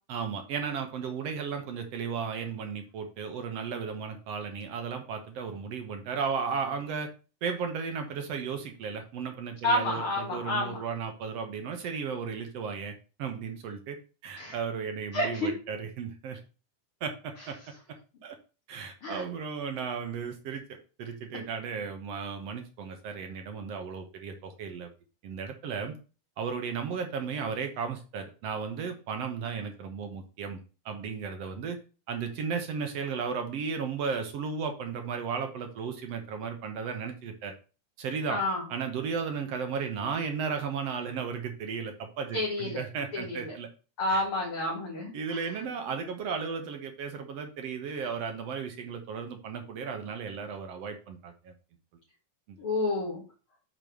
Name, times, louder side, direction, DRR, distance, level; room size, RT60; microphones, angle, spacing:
voice 1, 0.1-7.1 7.4-14.0 14.2-16.4 17.0-17.6 18.2-18.4 18.7-24.9 25.2-26.0 26.4-30.6 30.9-31.8 32.1-37.6 38.0-38.4 38.7-43.7 44.1-44.2 45.1-51.5 52.5-52.6, right 6 dB, 60° right, 5 dB, 1.9 m, -35 dB
voice 2, 9.6-10.8 14.4-14.5 15.1-15.5 19.0-19.2 38.3-38.6 42.3-42.8 43.1-43.5 44.0-45.4 52.6-53.2, left 1 dB, 45° left, -4 dB, 2.6 m, -29 dB
7.1 x 4.2 x 6.2 m, 0.34 s
omnidirectional pair, 3.6 m